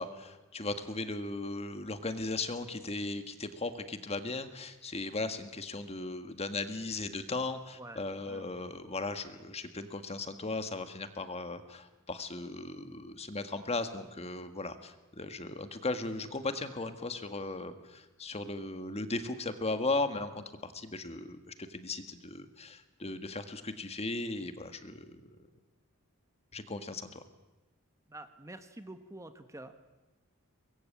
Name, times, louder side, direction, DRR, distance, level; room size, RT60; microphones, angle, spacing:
voice 1, 0.0-25.2 26.5-27.2, left 2 dB, 30° left, 9 dB, 1.6 m, -37 dB
voice 2, 7.8-8.6 28.1-29.7, right 1 dB, 15° right, 9 dB, 1.2 m, -48 dB
24.0 x 21.0 x 8.6 m, 1.1 s
head